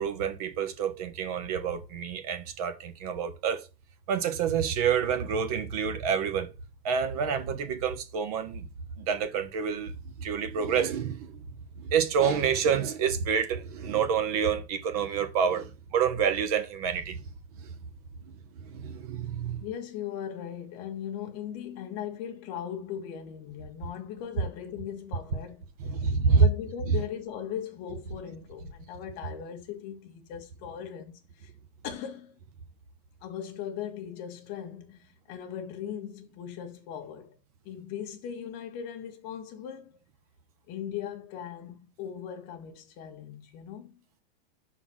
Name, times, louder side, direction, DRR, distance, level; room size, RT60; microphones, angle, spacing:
voice 1, 0.0-3.7 4.1-6.5 6.8-8.7 9.0-9.9 10.2-11.4 11.8-17.2 17.6-17.7 18.6-19.6 25.8-26.5, right 7 dB, 40° right, 0.9 m, -28 dB
voice 2, 19.6-25.7 26.0-31.5 31.8-32.3 33.2-37.4 37.6-39.9 40.7-44.0, left 9 dB, 30° left, 1.2 m, -39 dB
5.8 x 4.0 x 6.2 m
supercardioid pair, 170°, 29 cm